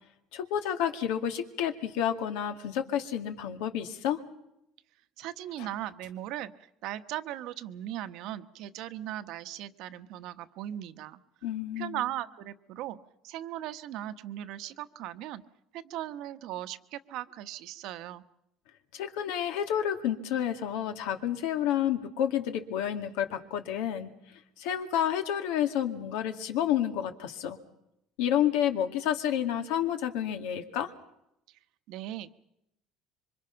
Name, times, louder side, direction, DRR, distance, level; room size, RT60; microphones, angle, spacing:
voice 1, 0.3-4.2 11.4-12.0 18.9-24.1 24.6-27.6 28.2-30.9, left 10 dB, 90° left, 7 dB, 2.2 m, -30 dB
voice 2, 5.2-6.5 6.8-11.2 11.8-13.0 13.2-15.4 15.7-18.2 31.5-31.6 31.9-32.4, right 13 dB, 65° right, 11 dB, 1.1 m, -38 dB
26.5 x 24.5 x 5.8 m, 0.81 s
cardioid pair, 140°, 0 cm